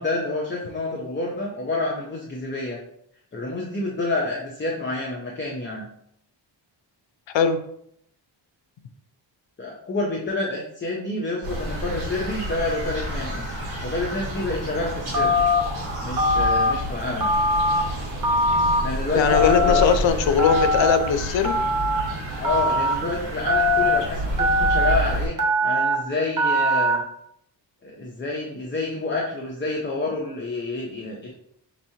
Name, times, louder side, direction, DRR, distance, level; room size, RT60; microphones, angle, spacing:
voice 1, 0.0-2.8 3.3-5.9 9.6-13.5 13.8-15.4 16.0-17.3 18.8-19.9 22.4-25.4 25.6-27.0 27.8-31.3, left 2 dB, 25° left, -2 dB, 0.6 m, -28 dB
sound 1, 11.4-25.3, equal, 60° right, 1.6 m, -30 dB
Telephone, 15.1-15.6 16.2-16.7 17.2-17.8 18.2-18.8 19.3-19.8 20.4-21.0 21.4-22.0 22.4-22.9 23.5-24.0 24.4-25.0 25.4-25.9 26.4-27.0, left 1 dB, 45° right, 0.9 m, -21 dB
voice 2, 19.2-21.7, left 6 dB, 75° left, 9 dB, 0.6 m, -20 dB
5.4 x 3.0 x 2.7 m, 0.70 s
wide cardioid pair, 140°, 46 cm